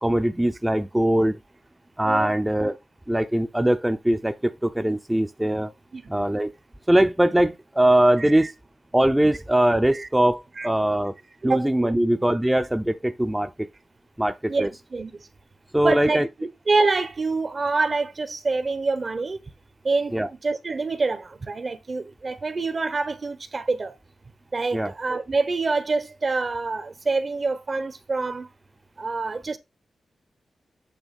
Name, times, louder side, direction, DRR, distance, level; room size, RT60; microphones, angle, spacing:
voice 1, 0.0-1.4 2.0-2.8 3.1-5.7 6.1-6.5 6.9-8.5 8.9-11.1 11.4-13.7 14.2-14.7 15.7-16.3 20.1-20.3 24.7-24.9, right 1 dB, 10° right, 0.8 m, -21 dB
voice 2, 8.2-8.5 9.9-10.1 10.6-10.7 11.4-11.7 14.5-15.3 15.8-19.4 19.8-23.9 24.5-28.5 29.0-29.6, right 3 dB, 45° right, 1.3 m, -26 dB
8.8 x 3.1 x 5.4 m
cardioid pair, 55°, 0 cm